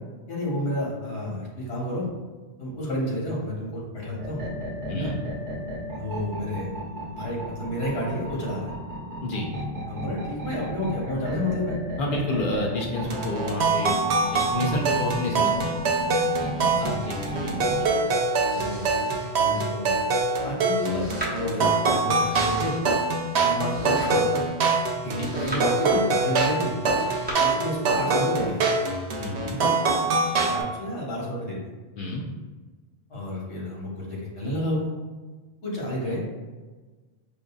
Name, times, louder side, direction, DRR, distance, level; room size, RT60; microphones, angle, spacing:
voice 1, 0.3-2.1 2.6-4.4 4.9-5.1 5.9-6.7 7.1-8.7 9.9-11.8 16.7-17.0 18.5-19.9 20.4-22.7 23.4-24.4 25.0-26.7 27.3-28.6 30.4-31.7 33.1-34.9 35.6-36.2, left 1 dB, 85° left, -5 dB, 1.5 m, -30 dB
sound 1, 4.2-17.9, equal, 50° right, 1.0 m, -35 dB
voice 2, 12.0-14.0 14.3-15.8 16.5-17.9 25.0-25.3 29.2-29.6 32.0-32.2, left 1 dB, 60° left, -1 dB, 0.7 m, -29 dB
sound 2, 13.0-30.6, right 3 dB, 85° right, 0.9 m, -24 dB
Domestic sounds home sounds, 17.0-27.3, right 1 dB, 10° right, 0.9 m, -41 dB
5.3 x 2.5 x 2.3 m, 1.3 s
omnidirectional pair, 1.1 m